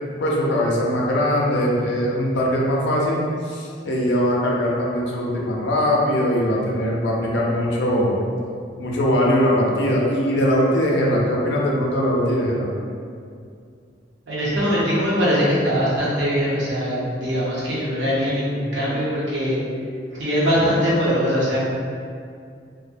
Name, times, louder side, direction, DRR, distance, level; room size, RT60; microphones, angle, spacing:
voice 1, 0.2-8.2 8.8-12.7, equal, 75° left, -3 dB, 0.5 m, -21 dB
voice 2, 14.3-19.6 20.1-21.6, equal, 85° right, -8 dB, 0.8 m, -21 dB
2.5 x 2.1 x 2.5 m, 2.3 s
head